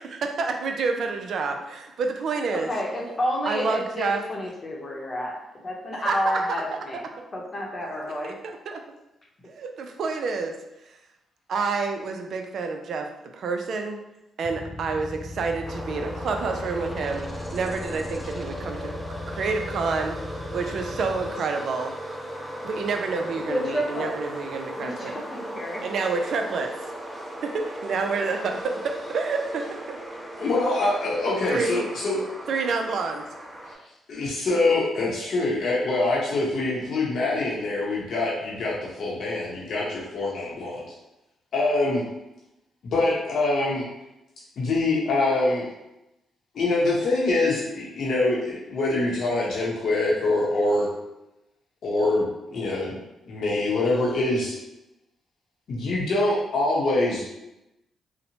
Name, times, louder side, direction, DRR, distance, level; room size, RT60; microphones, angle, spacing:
voice 1, 0.0-2.7 3.5-4.2 6.0-7.0 8.2-8.8 9.5-10.6 11.5-13.1 13.3-14.0 14.4-19.0 19.3-20.2 20.5-21.9 22.6-25.1 25.8-26.7 27.4-30.0 31.5-31.9 32.5-33.2, right 4 dB, 65° right, 4 dB, 0.3 m, -28 dB
voice 2, 2.5-5.4 5.6-7.0 7.3-8.4 23.5-24.1 24.8-25.8, left 1 dB, 40° left, -1 dB, 0.8 m, -30 dB
sound 1, 14.4-21.3, left 2 dB, 20° left, 0.4 m, -38 dB
sound 2, 15.6-33.8, right 1 dB, 10° right, 0.8 m, -37 dB
voice 3, 30.4-32.2 34.1-40.9 41.5-42.0 42.8-43.8 44.6-45.7 46.5-50.9 51.8-53.0 53.3-54.6 55.7-57.2, left 2 dB, 65° left, -5 dB, 0.7 m, -24 dB
2.9 x 2.1 x 2.7 m, 0.91 s
supercardioid pair, 60°, 0 cm